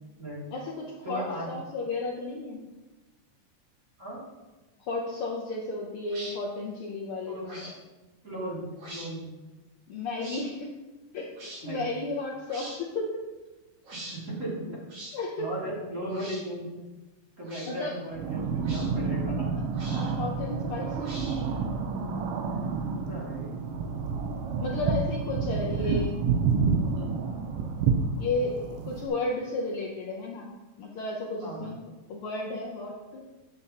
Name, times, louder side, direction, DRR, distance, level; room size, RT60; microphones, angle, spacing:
voice 1, 0.5-2.6 4.9-7.7 9.9-10.7 11.1-13.2 15.1-15.5 17.7-17.9 19.9-21.1 24.6-26.1 28.2-30.5 30.8-31.8 32.1-33.2, left 2 dB, 90° left, -2 dB, 1.2 m, -33 dB
voice 2, 1.0-1.5 4.0-4.2 7.2-7.6 8.2-9.2 11.6-11.8 14.0-14.6 15.4-16.7 17.4-19.5 23.0-23.6 24.7-24.8 25.8-26.0 26.9-27.1 31.4-31.7, right 1 dB, 25° right, -7 dB, 2.6 m, -36 dB
sound 1, 6.1-6.4 7.4-7.8 8.8-9.1 10.2-10.4 11.4-11.6 12.5-12.8 13.8-14.2 14.9-15.2 16.1-16.4 17.4-17.7 18.6-18.9 19.7-20.2 21.0-21.5, right 1 dB, 50° right, 2.7 m, -43 dB
sound 2, 18.1-29.1, right 5 dB, 85° right, 1.3 m, -29 dB
9.6 x 7.5 x 2.9 m, 1.2 s
omnidirectional pair, 3.6 m